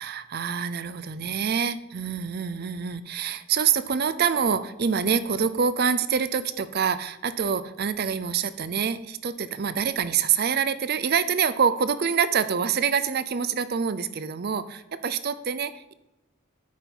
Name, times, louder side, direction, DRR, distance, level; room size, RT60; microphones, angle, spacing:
voice 1, 0.0-15.9, right 6 dB, 50° right, 14 dB, 0.5 m, -26 dB
9.0 x 5.5 x 4.6 m, 0.96 s
head